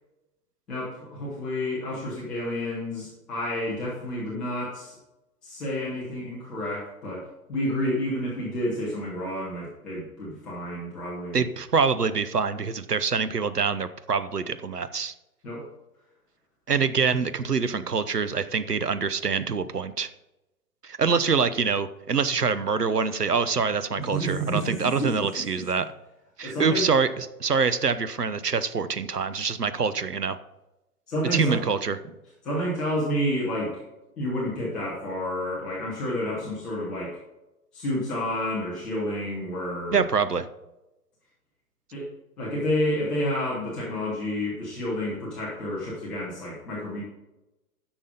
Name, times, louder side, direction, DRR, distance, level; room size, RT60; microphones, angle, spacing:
voice 1, 0.7-5.0 5.4-11.5 15.4-15.7 24.0-25.6 26.4-26.8 31.1-31.6 32.4-33.7 34.2-37.2 37.7-40.0 41.9-42.1 42.4-47.0, equal, ahead, -8 dB, 0.4 m, -30 dB
voice 2, 11.3-15.1 16.7-20.1 20.8-25.9 26.4-30.4 31.3-32.0 39.9-40.5, right 5 dB, 90° right, 12 dB, 0.8 m, -25 dB
9.9 x 6.2 x 5.3 m, 0.97 s
figure-of-eight pair, 115°, 46 cm